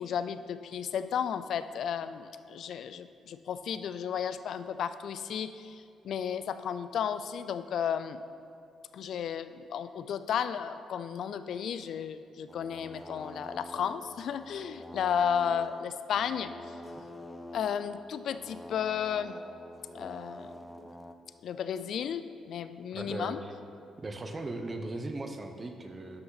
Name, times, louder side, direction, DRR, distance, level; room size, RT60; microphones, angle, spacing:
voice 1, 0.0-8.2 8.9-16.7 17.5-19.4 19.9-20.5 21.4-23.4, left 8 dB, 70° left, 12 dB, 0.4 m, -33 dB
sound 1, 12.5-21.1, left 1 dB, 5° left, 0.5 m, -46 dB
voice 2, 22.9-23.5 24.0-26.2, right 2 dB, 30° right, 6 dB, 0.8 m, -38 dB
11.5 x 5.7 x 4.0 m, 2.4 s
cardioid pair, 90°, 0 cm